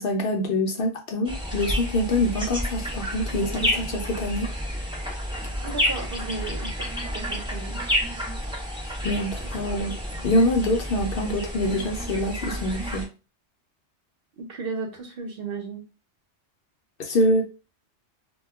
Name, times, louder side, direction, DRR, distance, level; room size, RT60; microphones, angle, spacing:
voice 1, 0.0-4.5 9.0-9.9 10.2-13.1 17.0-17.4, left 1 dB, 60° left, 2 dB, 0.7 m, -25 dB
sound 1, 1.2-13.0, equal, 5° right, 0.4 m, -30 dB
voice 2, 5.6-7.8 9.7-9.9 14.4-15.8, right 4 dB, 60° right, 2 dB, 0.8 m, -35 dB
2.2 x 2.2 x 3.4 m, 0.32 s
omnidirectional pair, 1.2 m